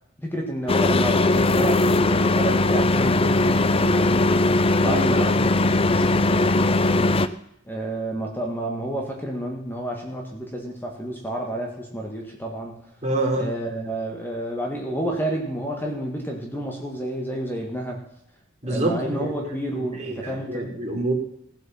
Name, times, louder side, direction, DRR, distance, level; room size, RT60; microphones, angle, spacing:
voice 1, 0.2-4.4 4.8-5.4 5.9-7.1 7.7-12.8 13.3-18.0 18.6-20.7, right 1 dB, 10° left, 0 dB, 1.8 m, -30 dB
sound 1, 0.7-7.3, left 2 dB, 30° left, 0.6 m, -19 dB
voice 2, 13.0-13.5 18.6-21.1, right 1 dB, 35° right, -2 dB, 3.8 m, -27 dB
17.5 x 8.1 x 5.7 m, 0.77 s
head